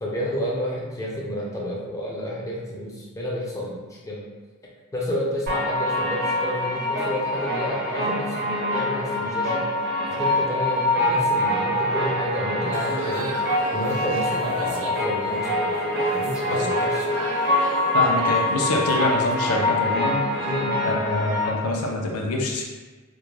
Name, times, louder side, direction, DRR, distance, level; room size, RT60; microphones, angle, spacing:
voice 1, 0.0-4.3 4.9-9.6 10.1-13.3 13.7-15.8 16.1-17.1 20.5-20.7, equal, 15° left, -4 dB, 0.5 m, -30 dB
sound 1, 5.5-21.5, left 1 dB, 50° right, 0.7 m, -24 dB
sound 2, 12.7-19.7, right 3 dB, 75° right, 0.4 m, -36 dB
voice 2, 17.9-20.2 20.8-22.6, left 2 dB, 85° left, 0 dB, 0.5 m, -25 dB
2.3 x 2.2 x 3.0 m, 1.3 s
head